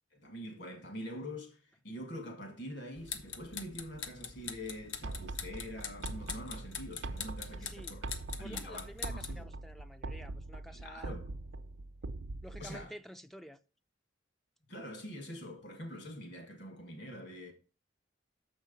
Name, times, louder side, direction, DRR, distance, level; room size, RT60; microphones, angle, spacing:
voice 1, 0.1-8.1 8.4-9.5 10.7-11.3 12.6-12.9 14.7-17.5, equal, 60° left, 2.1 m, -45 dB
sound 1, 3.0-9.4, left 6 dB, 80° left, 1.0 m, -44 dB
sound 2, 5.0-12.9, right 2 dB, 70° right, 0.5 m, -43 dB
voice 2, 7.5-8.0 8.4-11.1 12.4-13.6, equal, ahead, 0.3 m, -50 dB
7.0 x 5.1 x 5.4 m
head